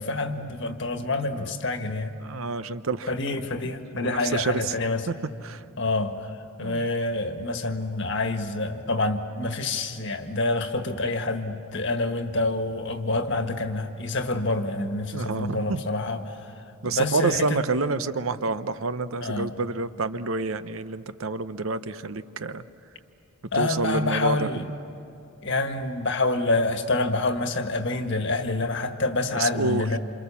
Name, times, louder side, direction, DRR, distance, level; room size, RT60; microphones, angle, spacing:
voice 1, 0.0-2.2 3.1-5.1 5.8-6.3 6.6-16.5 16.8-17.6 19.2-19.5 23.5-24.6 25.4-30.0, left 2 dB, 60° left, 6 dB, 1.6 m, -27 dB
voice 2, 2.2-4.7 5.1-5.2 5.4-5.6 6.6-6.9 15.1-15.8 16.8-22.6 23.5-24.5 29.3-29.9, right 3 dB, 80° right, 12 dB, 0.8 m, -28 dB
28.0 x 27.0 x 7.1 m, 2.9 s
head